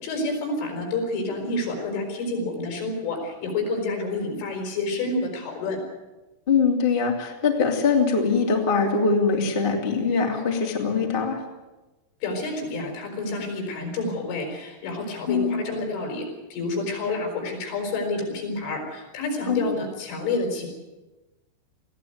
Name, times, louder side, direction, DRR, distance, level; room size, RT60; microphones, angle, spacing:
voice 1, 0.0-5.8 12.2-20.7, left 2 dB, 75° left, 2 dB, 7.5 m, -29 dB
voice 2, 6.5-11.4 15.3-15.6 19.5-19.8, left 5 dB, 15° left, 1 dB, 1.7 m, -22 dB
21.0 x 15.5 x 9.4 m, 1.1 s
omnidirectional pair, 5.6 m